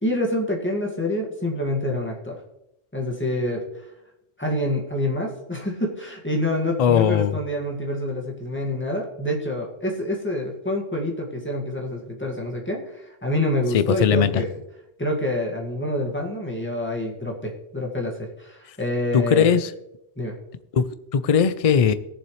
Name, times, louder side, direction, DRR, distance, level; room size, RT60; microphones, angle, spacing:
voice 1, 0.0-2.4 2.9-3.6 4.4-14.5 15.0-19.6 20.2-20.4, left 1 dB, 10° left, -1 dB, 1.9 m, -27 dB
voice 2, 6.8-7.4 13.7-14.4 19.1-19.7 20.7-21.9, left 7 dB, 45° left, 13 dB, 0.5 m, -19 dB
19.0 x 7.3 x 3.2 m, 0.89 s
omnidirectional pair, 1.1 m